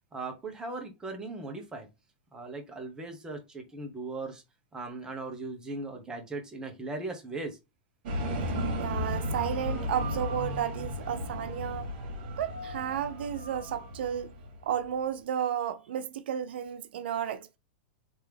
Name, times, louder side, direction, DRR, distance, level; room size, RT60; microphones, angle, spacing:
voice 1, 0.1-1.9 2.3-4.4 4.7-7.6, right 3 dB, 15° right, 1.1 m, -38 dB
sound 1, 8.1-14.8, left 1 dB, 60° right, 1.7 m, -34 dB
voice 2, 8.8-11.9 12.4-14.3 14.6-17.6, right 9 dB, 80° right, 0.4 m, -33 dB
3.3 x 2.9 x 3.4 m
supercardioid pair, 135°, 6 cm